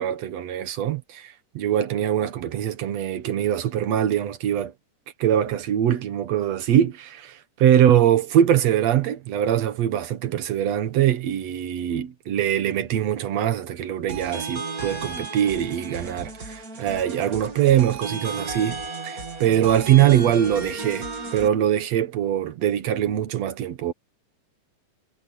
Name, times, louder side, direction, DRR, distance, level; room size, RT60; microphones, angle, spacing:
voice 1, 0.0-4.7 5.2-7.3 7.6-18.8 19.0-23.9, right 10 dB, 60° right, 2.3 m, -22 dB
sound 1, 14.1-21.5, right 4 dB, 30° right, 2.8 m, -34 dB
omnidirectional pair, 3.6 m